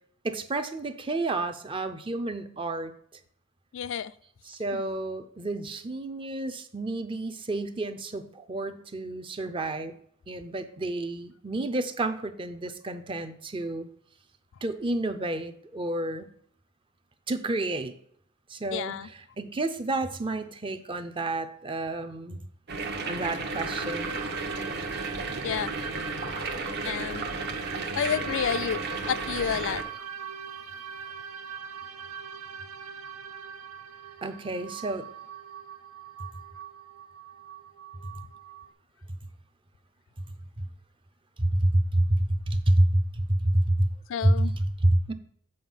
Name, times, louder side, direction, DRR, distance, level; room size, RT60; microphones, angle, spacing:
voice 1, 0.2-2.9 4.5-9.9 10.3-13.9 14.6-16.3 17.3-18.0 18.5-22.4 23.1-24.1 34.2-35.1 41.4-43.9 44.2-45.1, right 1 dB, 25° right, 9 dB, 0.6 m, -29 dB
voice 2, 3.7-4.1 4.7-4.8 18.7-19.1 25.4-25.7 26.8-27.3 27.9-28.8 29.1-29.8 44.1-44.5, left 8 dB, 60° left, 14 dB, 0.3 m, -30 dB
sound 1, 22.7-29.8, right 3 dB, 50° right, 0.9 m, -33 dB
sound 2, 23.5-38.7, right 7 dB, 90° right, 0.8 m, -41 dB
7.8 x 4.7 x 5.4 m, 0.64 s
head